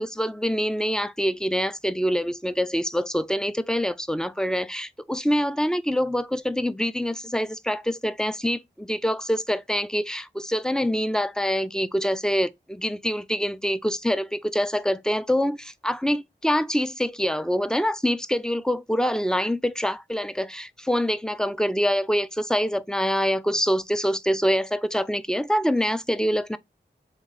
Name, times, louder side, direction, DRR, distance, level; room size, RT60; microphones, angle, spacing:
voice 1, 0.0-26.6, equal, 5° left, 0.4 m, -25 dB
3.6 x 2.9 x 4.0 m
wide cardioid pair, 40°, 19 cm